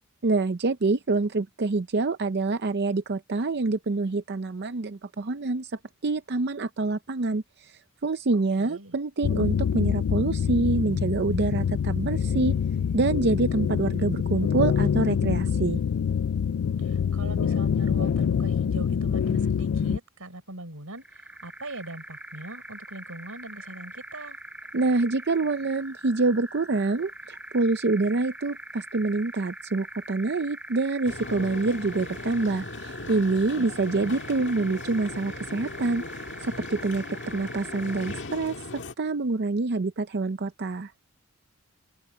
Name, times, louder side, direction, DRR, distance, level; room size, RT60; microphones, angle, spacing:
voice 1, 0.2-12.5 12.9-15.8 24.7-40.9, right 3 dB, 50° right, 0.6 m, -26 dB
voice 2, 8.3-8.9 16.8-24.4 33.5-34.2, right 2 dB, 75° right, 5.1 m, -42 dB
sound 1, 9.2-20.0, left 7 dB, 75° left, 0.4 m, -25 dB
sound 2, 20.9-38.4, right 1 dB, 5° right, 3.8 m, -43 dB
sound 3, 31.0-38.9, left 2 dB, 60° left, 1.7 m, -38 dB
head